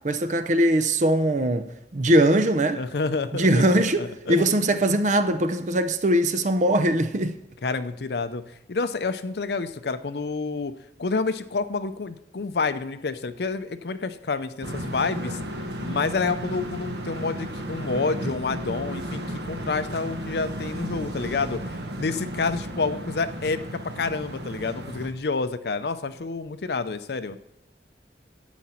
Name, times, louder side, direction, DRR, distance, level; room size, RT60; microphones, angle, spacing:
voice 1, 0.0-2.8 3.3-7.4, right 1 dB, 45° right, 0.6 m, -21 dB
voice 2, 2.7-4.4 7.6-10.7 11.0-15.4 15.8-27.4, left 4 dB, 65° left, 0.6 m, -29 dB
sound 1, 14.6-25.1, right 1 dB, 70° right, 1.2 m, -34 dB
11.5 x 8.3 x 4.4 m
head